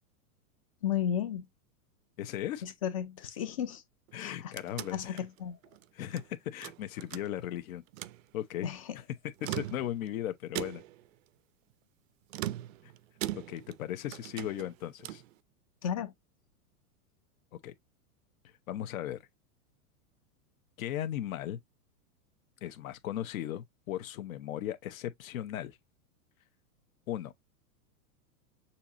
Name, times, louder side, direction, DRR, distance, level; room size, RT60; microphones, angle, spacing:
voice 1, 0.8-1.5 2.6-3.8 4.1-4.5 4.9-5.6 8.6-9.0 15.8-16.1, left 9 dB, 25° left, 0.4 m, -34 dB
voice 2, 2.2-2.6 4.1-5.3 5.9-7.8 8.3-8.7 9.4-10.8 13.3-15.2 17.6-17.7 18.7-19.2 20.8-21.6 22.6-25.8 27.1-27.3, left 12 dB, 65° left, 1.1 m, -37 dB
sound 1, 4.1-6.3 6.6-7.6 7.9-8.2 9.3-10.1 10.5-11.1 12.3-13.8 14.1-15.3, right 15 dB, 60° right, 0.5 m, -40 dB
6.9 x 2.9 x 2.6 m
supercardioid pair, 160°, 45 cm